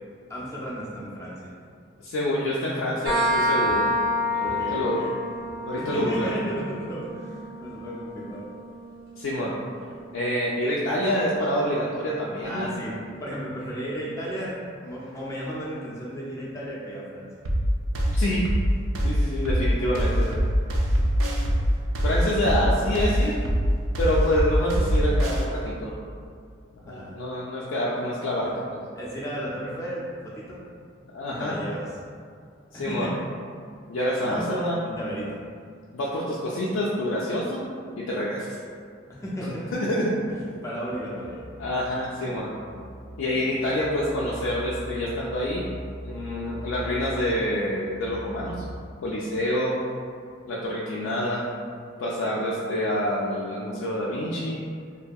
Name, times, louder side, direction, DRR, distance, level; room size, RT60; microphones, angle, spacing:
voice 1, 0.3-1.5 4.4-5.1 5.7-8.5 12.4-17.3 26.9-27.1 28.4-28.5 29.0-30.6 31.3-31.9 32.7-33.2 34.2-34.5 34.8-35.4 39.1-39.7 40.6-41.4, equal, 15° left, -6 dB, 0.4 m, -34 dB
voice 2, 2.0-3.9 4.3-5.0 5.7-6.4 9.2-9.5 10.1-12.7 17.9-18.5 19.0-20.4 22.0-23.4 24.0-25.9 26.8-28.5 31.1-31.6 32.8-33.1 33.9-34.8 35.9-37.7 37.9-38.5 39.7-40.1 41.6-42.5 43.2-45.7 46.0-48.6 49.0-49.8 50.5-51.5 52.0-54.6, left 1 dB, 80° left, -6 dB, 0.3 m, -27 dB
sound 1, 3.1-10.5, left 1 dB, 50° right, 0.7 m, -29 dB
sound 2, 17.5-25.5, equal, 85° right, 0.4 m, -23 dB
sound 3, 41.2-48.8, right 1 dB, 70° right, 1.3 m, -40 dB
2.6 x 2.6 x 2.2 m, 2.2 s
head